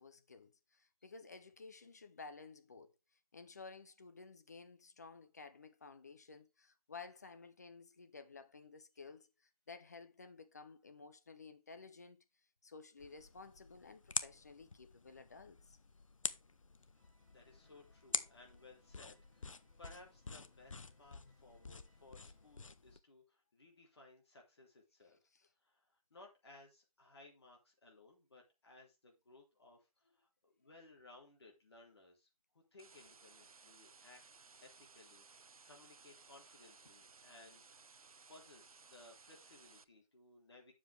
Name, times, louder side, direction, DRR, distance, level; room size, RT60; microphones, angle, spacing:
voice 1, 0.0-2.9 3.3-12.2 12.6-15.8 25.3-25.5, left 4 dB, 30° left, 0.7 m, -54 dB
sound 1, 13.0-23.0, left 4 dB, 60° left, 0.8 m, -46 dB
sound 2, 16.9-22.5, equal, 20° right, 6.3 m, -78 dB
voice 2, 17.3-25.2 25.6-32.3 32.5-34.2 34.6-37.8 38.3-40.7, left 2 dB, 45° left, 3.6 m, -61 dB
sound 3, 32.8-39.8, right 4 dB, 70° right, 0.6 m, -61 dB
9.0 x 7.4 x 3.4 m
figure-of-eight pair, 165°, 19 cm